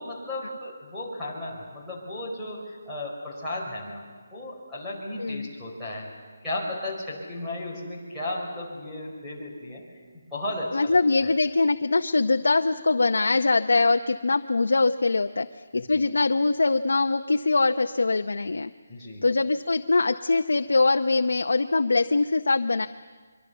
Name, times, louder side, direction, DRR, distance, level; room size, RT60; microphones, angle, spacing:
voice 1, 0.0-4.0 4.3-6.1 6.4-10.0 10.3-11.3 15.7-16.0 18.9-19.3, left 1 dB, ahead, -10 dB, 4.7 m, -35 dB
voice 2, 10.7-15.5 15.7-18.7 19.2-22.9, left 3 dB, 85° left, 6 dB, 0.8 m, -23 dB
24.5 x 24.0 x 7.0 m, 1.5 s
hypercardioid pair, 175°, 0 cm